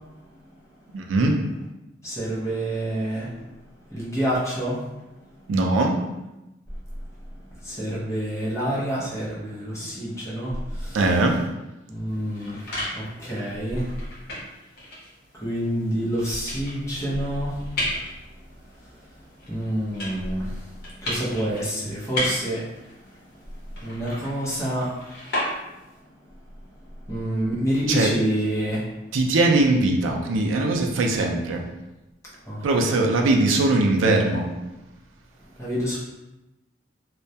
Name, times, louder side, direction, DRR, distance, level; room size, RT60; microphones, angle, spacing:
voice 1, 0.9-1.4 5.5-6.0 10.9-11.4 27.9-28.1 29.1-31.6 32.6-34.5, right 2 dB, 90° right, 2 dB, 0.4 m, -20 dB
voice 2, 2.0-3.5 3.9-4.9 7.6-11.4 11.9-12.6 12.9-13.9 15.3-17.6 19.5-20.7 21.0-22.7 23.8-24.9 27.1-28.8 32.5-33.2 35.6-36.0, equal, 15° left, -8 dB, 0.6 m, -28 dB
sound 1, 12.1-26.0, left 1 dB, 55° left, 0.8 m, -35 dB
2.2 x 2.1 x 2.6 m, 0.98 s
head